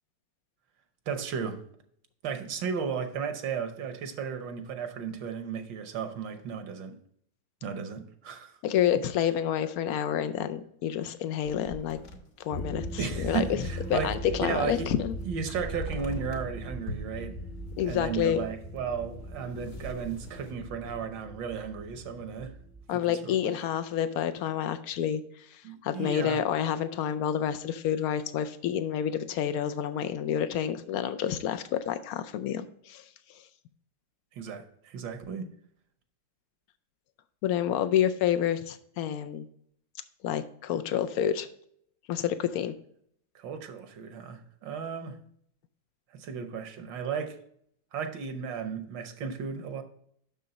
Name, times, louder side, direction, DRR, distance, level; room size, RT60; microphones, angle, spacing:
voice 1, 1.1-1.6 2.2-6.9 7.6-8.6 13.0-14.1 14.4-14.9 15.2-17.4 17.8-22.5 22.9-23.6 25.6-26.4 34.3-35.5 43.3-45.2 46.1-47.4 47.9-49.8, right 6 dB, 75° right, 8 dB, 1.5 m, -34 dB
voice 2, 8.6-12.0 12.4-13.6 13.9-15.1 17.8-18.4 22.9-33.0 37.4-39.4 40.2-41.5 42.1-42.7, left 9 dB, 75° left, 11 dB, 0.8 m, -29 dB
sound 1, 11.5-14.6 14.8-16.5 16.8-20.5, right 1 dB, 45° left, 1.2 m, -44 dB
sound 2, 12.5-22.8, right 1 dB, 25° left, 0.8 m, -39 dB
6.7 x 6.2 x 3.9 m, 0.67 s
omnidirectional pair, 2.1 m